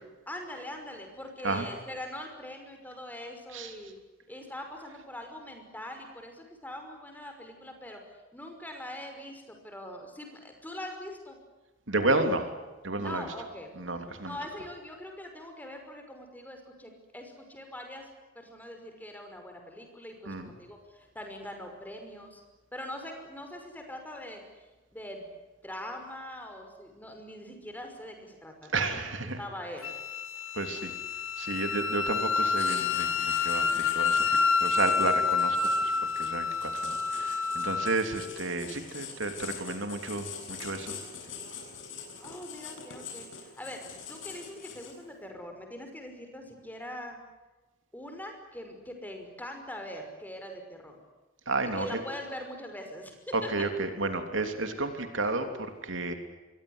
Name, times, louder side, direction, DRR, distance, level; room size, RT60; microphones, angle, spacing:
voice 1, 0.3-4.0 4.3-8.0 8.3-11.4 13.0-13.7 14.3-18.1 18.4-22.4 22.7-24.4 24.9-25.3 25.6-29.0 29.4-29.9 42.2-47.2 47.9-51.0 51.8-53.7, left 1 dB, 10° left, 4 dB, 5.7 m, -42 dB
voice 2, 11.9-12.5 12.8-13.3 13.8-14.4 20.2-20.5 28.7-29.4 30.5-30.9 31.4-41.0 51.5-52.0 53.3-56.1, right 2 dB, 70° right, 6 dB, 3.2 m, -32 dB
Wind instrument woodwind instrument, 29.8-38.0, left 5 dB, 85° left, 2.2 m, -28 dB
Writing, 32.6-45.1, left 6 dB, 65° left, 7.6 m, -44 dB
27.5 x 23.0 x 8.2 m, 1.2 s
head